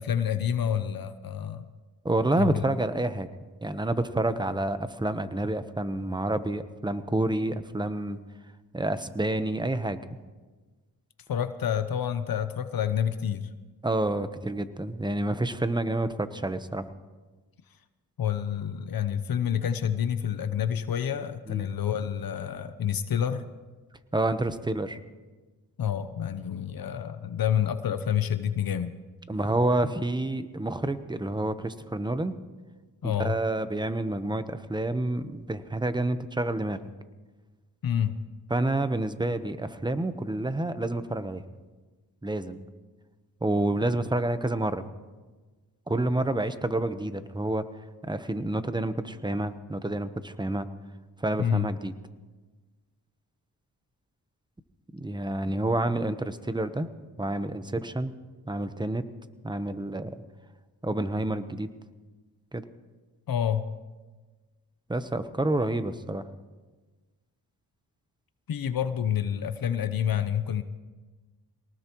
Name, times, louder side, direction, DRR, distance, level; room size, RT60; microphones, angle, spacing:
voice 1, 0.0-1.7 2.4-2.7 11.3-13.5 18.2-23.5 25.8-28.9 33.0-33.4 37.8-38.2 51.4-51.7 63.3-63.7 68.5-70.6, left 9 dB, 65° left, 11 dB, 0.9 m, -28 dB
voice 2, 2.0-3.3 3.6-8.2 8.7-10.0 13.8-16.9 21.5-21.7 24.1-25.0 29.3-32.4 33.0-36.8 38.5-41.4 42.2-42.6 43.4-44.8 45.9-47.7 48.0-50.7 51.2-51.9 54.9-56.9 57.2-58.1 58.5-59.0 59.4-60.1 60.8-61.7 62.5-62.6 64.9-66.2, right 2 dB, 10° right, 11 dB, 1.0 m, -28 dB
23.5 x 19.0 x 3.1 m, 1.3 s
cardioid pair, 70°, 39 cm